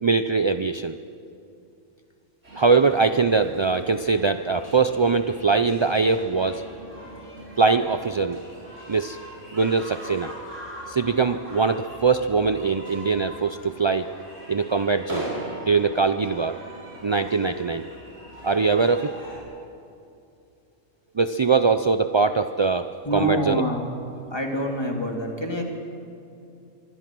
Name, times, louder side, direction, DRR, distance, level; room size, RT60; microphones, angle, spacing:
voice 1, 0.0-1.0 2.5-6.6 7.6-8.4 8.9-9.2 9.5-10.3 10.9-14.1 14.5-15.3 15.7-16.6 17.0-17.8 18.4-19.2 21.2-23.6, right 4 dB, 45° right, 9 dB, 0.3 m, -22 dB
sound 1, 2.4-19.4, right 1 dB, 70° right, 7.2 m, -40 dB
voice 2, 23.0-23.9 24.3-25.6, equal, 20° left, 1 dB, 3.1 m, -26 dB
25.0 x 24.0 x 6.2 m, 2.6 s
omnidirectional pair, 1.3 m